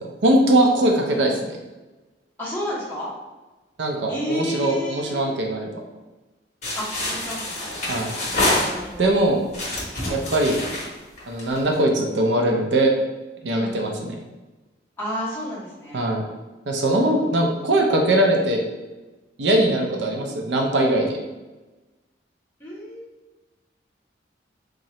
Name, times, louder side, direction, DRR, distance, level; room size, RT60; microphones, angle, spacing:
voice 1, 0.2-1.6 3.8-5.7 7.9-8.2 9.0-9.4 10.1-10.6 11.3-12.9 13.4-14.2 15.9-16.2 16.7-18.6 19.4-21.2, right 1 dB, 75° right, 1 dB, 0.6 m, -21 dB
voice 2, 1.0-1.4 2.4-3.1 4.1-5.2 6.7-7.9 8.7-9.2 10.0-10.2 13.5-13.9 15.0-16.1 16.9-17.7 20.1-20.3 22.6-23.1, equal, 15° left, -9 dB, 1.2 m, -32 dB
sound 1, 6.6-9.1 9.5-11.7, left 1 dB, 40° left, 1.1 m, -26 dB
3.8 x 2.8 x 3.1 m, 1.2 s
head